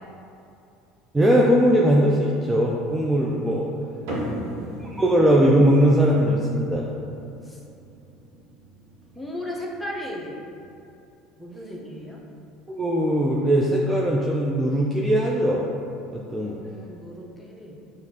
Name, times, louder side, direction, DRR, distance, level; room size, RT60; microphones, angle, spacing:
voice 1, 1.1-3.7 4.8-6.9 12.7-15.7 16.1-16.6, equal, 15° right, -3 dB, 0.4 m, -20 dB
voice 2, 4.0-5.2 7.4-7.6 9.1-10.4 11.4-12.2 16.4-17.8, left 1 dB, 5° left, -3 dB, 0.7 m, -37 dB
sound 1, 4.1-10.8, right 1 dB, 75° right, 1.2 m, -38 dB
5.7 x 2.5 x 2.8 m, 2.6 s
supercardioid pair, 90°, 0 cm